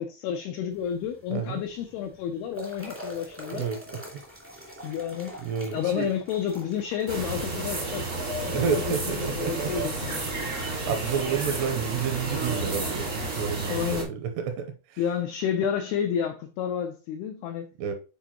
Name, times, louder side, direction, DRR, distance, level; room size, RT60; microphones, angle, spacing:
voice 1, 0.0-3.7 4.8-5.3 5.7-8.0 8.5-10.2 13.7-14.1 15.0-17.7, left 8 dB, 90° left, 2.2 m, -30 dB
sound 1, 0.7-13.7, equal, 15° right, 0.5 m, -47 dB
voice 2, 1.3-1.6 3.5-4.0 5.4-6.1 8.5-9.9 10.3-15.0 17.8-17.9, right 7 dB, 80° right, 2.7 m, -30 dB
sound 2, 7.1-14.0, right 2 dB, 60° right, 0.7 m, -31 dB
9.2 x 4.6 x 2.9 m
omnidirectional pair, 5.3 m